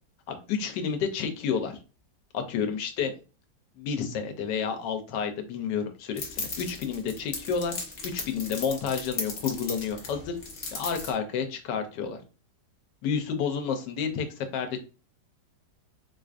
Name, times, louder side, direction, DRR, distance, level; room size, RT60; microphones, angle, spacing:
voice 1, 0.3-1.8 2.3-3.1 3.8-7.7 8.0-10.4 10.7-12.2 13.0-14.3 14.5-14.8, left 6 dB, 85° left, 7 dB, 1.3 m, -30 dB
sound 1, 6.2-11.1, left 3 dB, 45° left, 0.9 m, -37 dB
4.5 x 2.5 x 2.4 m, 0.33 s
omnidirectional pair, 1.8 m